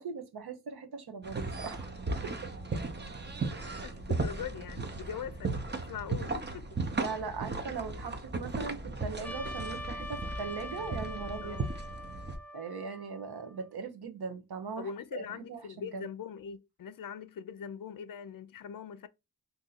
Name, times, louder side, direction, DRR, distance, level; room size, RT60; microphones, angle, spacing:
voice 1, 0.0-1.9 2.2-2.6 3.5-3.8 7.0-11.6 12.5-15.6 15.9-16.0, right 5 dB, 80° right, 0.8 m, -40 dB
sound 1, 1.2-12.4, right 3 dB, 30° right, 0.7 m, -36 dB
voice 2, 3.8-6.8 11.4-11.7 14.8-19.1, left 7 dB, 60° left, 0.5 m, -42 dB
Trumpet, 9.2-13.7, left 1 dB, 5° left, 0.5 m, -43 dB
2.7 x 2.7 x 3.8 m
cardioid pair, 55°, 39 cm